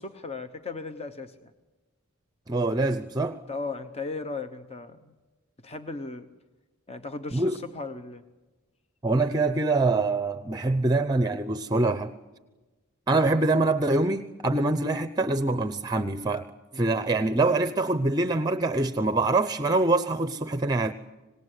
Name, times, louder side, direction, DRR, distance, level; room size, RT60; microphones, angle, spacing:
voice 1, 0.0-1.5 3.5-5.1 5.6-6.3 6.9-8.2 16.7-16.9, left 3 dB, 30° left, 8 dB, 1.0 m, -36 dB
voice 2, 2.5-3.4 7.3-7.6 9.0-12.1 13.1-16.5 16.7-20.9, right 2 dB, 20° right, 10 dB, 0.7 m, -24 dB
26.0 x 19.5 x 8.2 m, 1.2 s
head